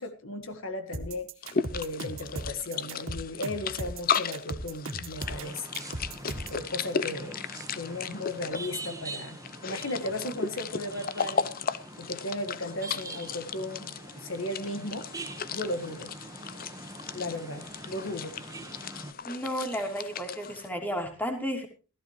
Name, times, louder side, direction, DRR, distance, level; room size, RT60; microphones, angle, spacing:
voice 1, 0.0-5.7 6.5-7.4 7.7-11.5 12.0-15.1 15.5-16.1 17.1-18.4, left 1 dB, 65° left, 8 dB, 1.7 m, -36 dB
sound 1, 0.9-6.6, right 2 dB, 70° right, 2.2 m, -37 dB
sound 2, 1.4-20.7, left 6 dB, 45° left, 0.7 m, -36 dB
sound 3, 5.2-19.1, right 2 dB, 15° right, 1.4 m, -44 dB
voice 2, 19.2-21.7, equal, 10° left, 4 dB, 3.0 m, -32 dB
16.0 x 15.0 x 3.2 m, 0.35 s
head